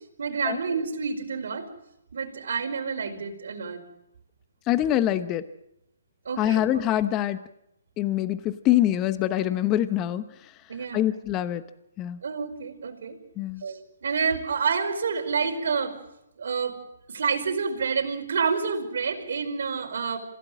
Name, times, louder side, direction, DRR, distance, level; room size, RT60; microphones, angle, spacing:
voice 1, 0.2-1.7 2.1-3.8 6.2-6.6 10.7-11.1 12.2-13.2 13.6-15.9 16.4-16.8 17.1-20.2, right 5 dB, 65° right, 4 dB, 5.0 m, -28 dB
voice 2, 4.7-5.4 6.4-7.4 8.0-10.2 10.9-11.6 12.0-12.2 13.4-13.6, left 12 dB, 20° left, 13 dB, 0.9 m, -24 dB
26.5 x 16.5 x 7.6 m, 0.83 s
hypercardioid pair, 155°, 0 cm